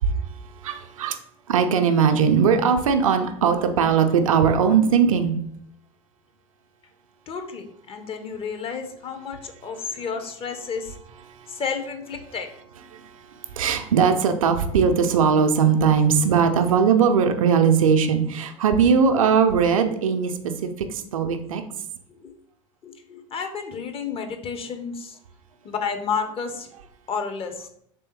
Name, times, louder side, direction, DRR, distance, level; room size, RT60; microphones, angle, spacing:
voice 1, 0.6-1.1 1.5-5.4 12.9-13.1 13.5-20.3 20.6-21.6, right 6 dB, 75° right, 6 dB, 0.4 m, -19 dB
voice 2, 7.3-10.9 11.5-12.5 22.1-22.3 22.8-25.2 25.6-26.7 27.1-27.7, left 5 dB, 35° left, 6 dB, 0.6 m, -31 dB
3.4 x 3.2 x 3.0 m, 0.70 s
figure-of-eight pair, 75°, 17 cm